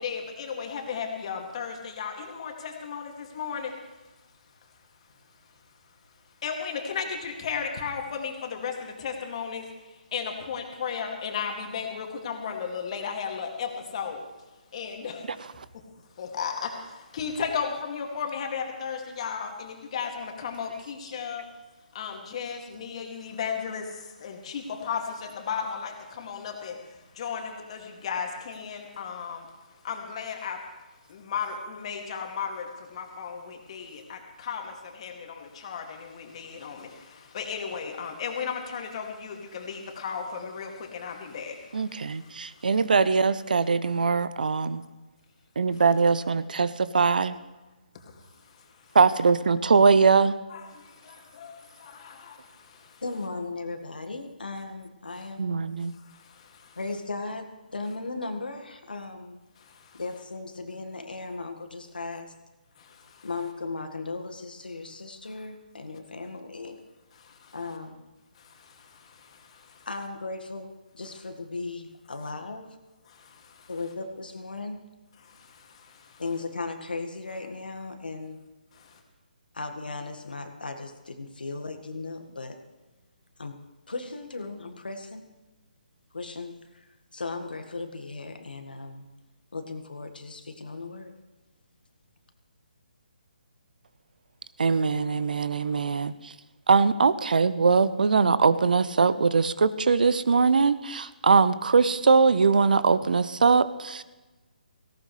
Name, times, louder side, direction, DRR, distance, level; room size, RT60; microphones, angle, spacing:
voice 1, 0.0-4.1 6.4-14.3 14.7-15.3 15.7-15.9 16.1-21.5 21.9-30.7 31.1-42.7 43.5-43.7 47.9-49.0 50.5-53.0 55.1-55.3 55.9-56.8 59.6-60.0 62.8-63.3 67.2-67.6 68.3-69.9 73.1-73.7 75.2-76.2 78.7-79.0, left 6 dB, 40° left, 3 dB, 2.4 m, -35 dB
voice 2, 41.7-44.8 45.6-47.4 48.9-50.3 55.4-55.9 94.6-96.3 96.7-104.0, right 5 dB, 65° right, 16 dB, 0.7 m, -22 dB
voice 3, 53.0-55.8 56.7-59.4 59.9-62.3 63.2-66.8 67.5-68.0 69.8-72.7 73.7-74.8 76.2-78.4 79.5-82.6 83.4-83.5 83.9-85.3 86.1-89.1 89.5-91.1, left 3 dB, 75° left, 6 dB, 1.8 m, -37 dB
18.0 x 17.5 x 3.3 m, 1.1 s
figure-of-eight pair, 140°, 5 cm